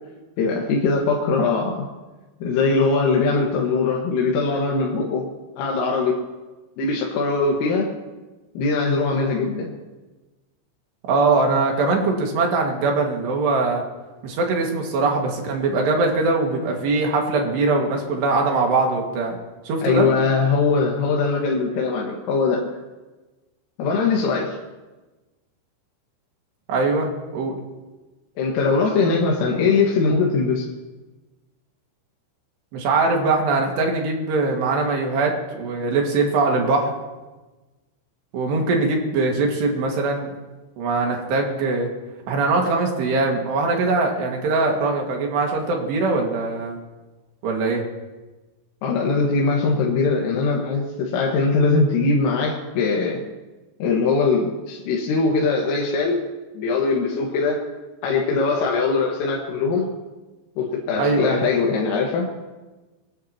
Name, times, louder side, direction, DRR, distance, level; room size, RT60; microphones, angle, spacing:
voice 1, 0.4-1.9 2.4-5.3 5.6-6.2 6.8-7.9 8.6-9.7 19.8-22.6 23.8-24.6 28.4-30.7 48.8-53.2 53.8-56.2 56.5-57.6 58.0-59.9 60.6-62.3, left 4 dB, 90° left, -3 dB, 4.4 m, -21 dB
voice 2, 11.1-13.8 14.2-19.4 19.7-20.1 26.7-27.5 32.7-36.9 38.3-40.3 40.8-41.9 42.3-46.8 47.4-47.8 61.0-61.4, right 3 dB, 65° right, 0 dB, 3.8 m, -21 dB
23.5 x 19.0 x 3.0 m, 1.2 s
omnidirectional pair, 5.7 m